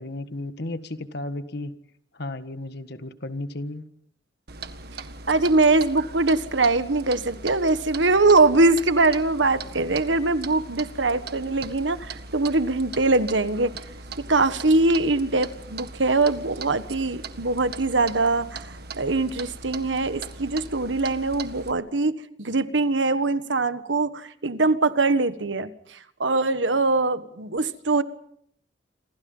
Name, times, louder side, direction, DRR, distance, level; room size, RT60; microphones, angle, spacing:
voice 1, 0.0-1.8 2.1-3.8, left 2 dB, 60° left, 11 dB, 1.7 m, -34 dB
Clock, 4.5-21.7, right 4 dB, 60° right, 1.8 m, -40 dB
voice 2, 5.3-13.7 14.3-22.1 22.4-28.0, right 3 dB, 80° right, 12 dB, 1.5 m, -22 dB
28.0 x 26.5 x 5.6 m, 0.67 s
head